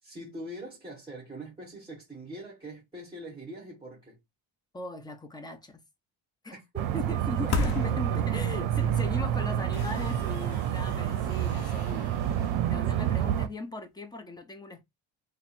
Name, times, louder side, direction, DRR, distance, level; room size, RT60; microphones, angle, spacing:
voice 1, 0.0-4.2 6.5-6.8 7.4-7.5 7.8-8.3, right 1 dB, 10° right, 1.6 m, -43 dB
voice 2, 4.7-5.8 6.4-6.5 6.9-12.1 12.6-14.8, left 2 dB, 10° left, 0.6 m, -38 dB
sound 1, 6.8-13.5, right 10 dB, 75° right, 0.6 m, -28 dB
sound 2, 7.1-8.6 9.1-9.2 9.7-13.5, left 6 dB, 60° left, 0.8 m, -38 dB
3.5 x 2.1 x 4.2 m
cardioid pair, 130°, 46 cm